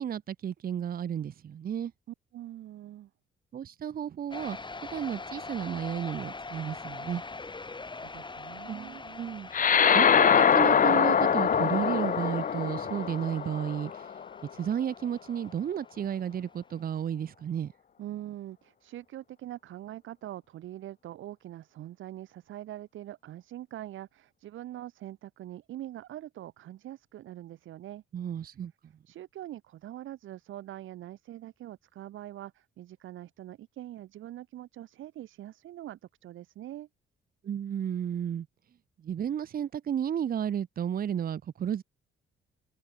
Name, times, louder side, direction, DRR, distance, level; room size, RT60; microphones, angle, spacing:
voice 1, 0.0-1.9 3.5-4.6 4.9-7.2 8.7-9.5 9.9-13.9 14.5-17.7 28.1-28.7 37.4-38.5 39.0-41.8, right 9 dB, 50° right, 0.8 m, -32 dB
voice 2, 2.1-3.1 8.0-9.0 18.0-28.0 29.1-36.9, right 13 dB, 80° right, 3.0 m, -43 dB
sound 1, 4.3-15.8, left 3 dB, 25° left, 4.3 m, -44 dB
sound 2, 9.5-14.3, left 7 dB, 45° left, 1.0 m, -23 dB
cardioid pair, 90°, 20 cm